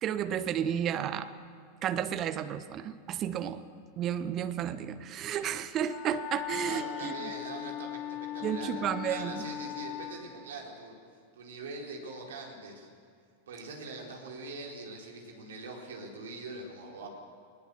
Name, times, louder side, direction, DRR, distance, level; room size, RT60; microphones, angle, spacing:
voice 1, 0.0-1.3 1.8-3.6 4.0-7.1 8.4-9.3, right 9 dB, 30° right, 12 dB, 1.1 m, -32 dB
Wind instrument woodwind instrument, 5.8-10.2, left 12 dB, 30° left, 1.9 m, -38 dB
voice 2, 6.7-10.9 11.3-12.9 13.5-17.1, right 3 dB, 60° right, 0 dB, 4.4 m, -43 dB
20.0 x 20.0 x 7.7 m, 2.1 s
figure-of-eight pair, 90°, 0 cm